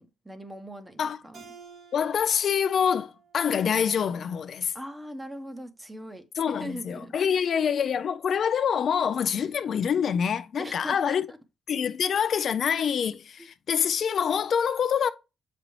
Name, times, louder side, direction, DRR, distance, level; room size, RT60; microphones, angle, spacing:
voice 1, 0.0-1.5 4.7-7.5 10.6-11.4 13.4-13.5, equal, 10° right, 1.0 m, -41 dB
Keyboard (musical), 1.3-4.6, right 5 dB, 60° right, 1.9 m, -53 dB
voice 2, 1.9-4.7 6.4-11.3 11.7-15.1, left 7 dB, 55° left, 0.4 m, -26 dB
7.3 x 5.1 x 3.2 m
cardioid pair, 90°, 0 cm